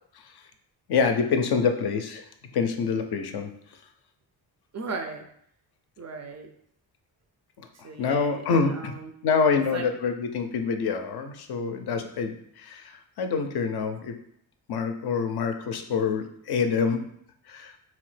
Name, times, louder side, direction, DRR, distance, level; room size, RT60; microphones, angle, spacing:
voice 1, 0.9-2.2 2.5-3.5 7.8-8.9 9.2-14.1 14.7-17.0 17.5-17.7, left 5 dB, 55° left, 6 dB, 0.5 m, -26 dB
voice 2, 4.7-5.3 6.0-6.5 7.7-9.1 9.7-9.9, right 4 dB, 40° right, 5 dB, 0.4 m, -36 dB
2.9 x 2.1 x 3.2 m, 0.69 s
supercardioid pair, 50°, 47 cm